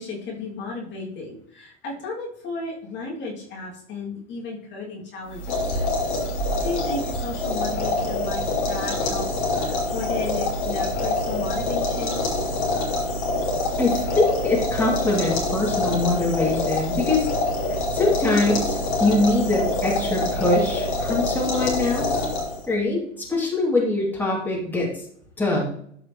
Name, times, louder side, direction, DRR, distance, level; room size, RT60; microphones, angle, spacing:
voice 1, 0.0-5.4 6.6-12.2, left 3 dB, 30° left, -4 dB, 2.6 m, -34 dB
sound 1, 5.3-22.7, left 2 dB, 50° left, 3.0 m, -25 dB
voice 2, 13.8-17.3 17.9-22.2 22.7-25.0 25.4-25.7, left 2 dB, 5° left, -4 dB, 2.6 m, -23 dB
13.0 x 4.9 x 3.1 m, 0.65 s
figure-of-eight pair, 90°, 35 cm